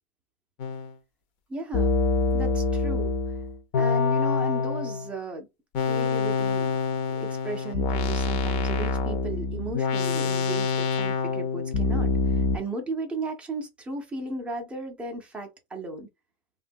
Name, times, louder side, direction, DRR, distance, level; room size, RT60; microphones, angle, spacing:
sound 1, 0.6-0.9 1.7-5.1 5.7-12.6, left 4 dB, 40° left, 0.6 m, -26 dB
voice 1, 1.5-1.9 2.3-3.1 3.8-5.5 5.8-6.7 7.1-16.1, right 2 dB, 5° right, 0.4 m, -35 dB
3.1 x 2.2 x 2.6 m
supercardioid pair, 140°, 33 cm